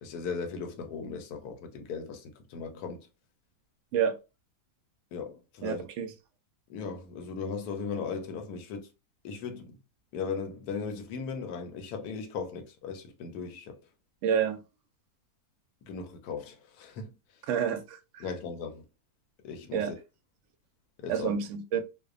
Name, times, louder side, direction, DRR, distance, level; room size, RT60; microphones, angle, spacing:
voice 1, 0.0-3.1 5.1-5.9 6.7-8.9 9.2-9.7 10.1-13.8 15.8-17.1 18.2-18.8 19.4-20.0 21.0-21.3, left 5 dB, 80° left, 1.1 m, -37 dB
voice 2, 5.6-6.1 14.2-14.6 17.5-18.2 19.7-19.9 21.1-21.8, right 7 dB, 70° right, 0.8 m, -29 dB
2.7 x 2.1 x 2.4 m
omnidirectional pair, 1.6 m